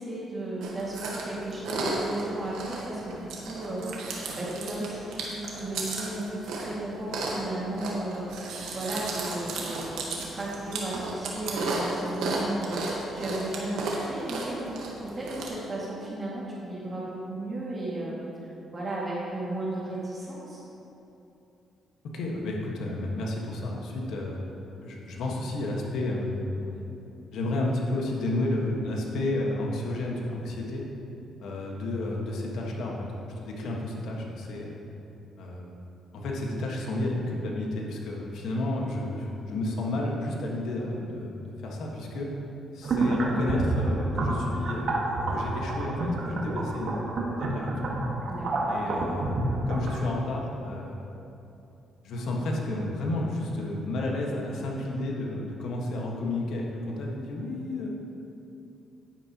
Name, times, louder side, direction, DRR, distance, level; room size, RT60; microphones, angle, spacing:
voice 1, 0.0-8.3 8.7-14.6 15.1-18.2 18.4-20.6 48.3-48.6, right 1 dB, 30° right, -6 dB, 2.1 m, -35 dB
Chewing mastication, 0.6-15.5, right 2 dB, 85° right, 1.4 m, -34 dB
voice 2, 22.1-24.4 24.8-26.8 27.3-30.8 31.4-33.1 33.4-34.8 35.4-35.8 36.1-42.3 42.7-48.0 48.7-51.0 52.0-57.9, left 1 dB, 75° left, -1 dB, 1.5 m, -31 dB
sound 1, 42.8-50.0, right 2 dB, 60° right, 1.5 m, -29 dB
10.5 x 9.5 x 3.0 m, 2.9 s
cardioid pair, 90°, 0 cm